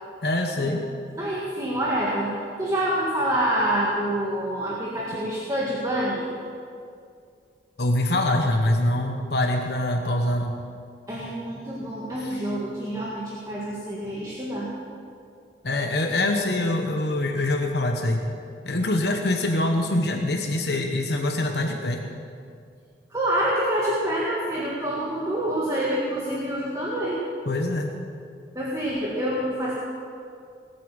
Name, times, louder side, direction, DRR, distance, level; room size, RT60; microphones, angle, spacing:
voice 1, 0.2-0.8 7.8-10.6 12.2-12.3 15.6-18.3 18.6-22.0 27.5-27.9, left 1 dB, 65° left, 3 dB, 1.2 m, -24 dB
voice 2, 1.2-6.3 11.1-14.7 23.1-27.2 28.5-29.7, right 1 dB, 20° right, -6 dB, 2.0 m, -27 dB
19.0 x 8.5 x 7.3 m, 2.3 s
head